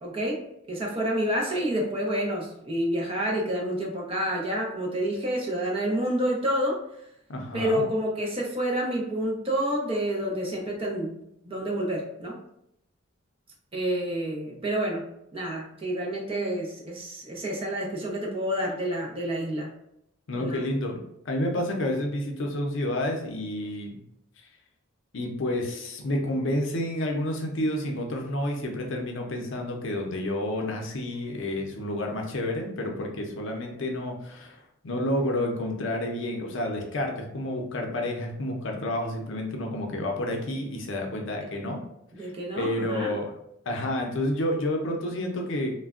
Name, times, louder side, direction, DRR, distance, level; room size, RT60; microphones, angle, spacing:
voice 1, 0.0-0.4 0.7-6.8 7.5-11.1 11.4-12.4 13.7-15.0 15.3-19.7 20.3-20.7 42.1-43.1, equal, 30° right, -2 dB, 0.6 m, -28 dB
voice 2, 7.3-7.9 20.3-24.0 25.1-41.8 42.2-43.3 43.7-45.7, left 1 dB, 65° left, 1 dB, 0.5 m, -30 dB
3.3 x 2.2 x 2.4 m, 0.77 s
head